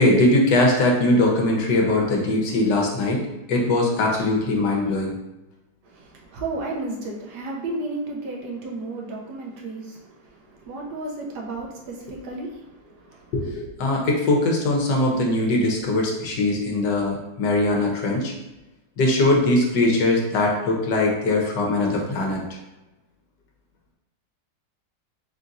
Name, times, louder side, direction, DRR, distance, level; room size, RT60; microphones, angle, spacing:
voice 1, 0.0-5.2 13.3-18.3 19.0-22.4, left 2 dB, 75° left, 0 dB, 1.5 m, -21 dB
voice 2, 5.9-10.1 10.6-12.7 12.9-13.2, right 2 dB, 75° right, -1 dB, 1.4 m, -33 dB
4.1 x 2.5 x 4.0 m, 1.0 s
omnidirectional pair, 1.9 m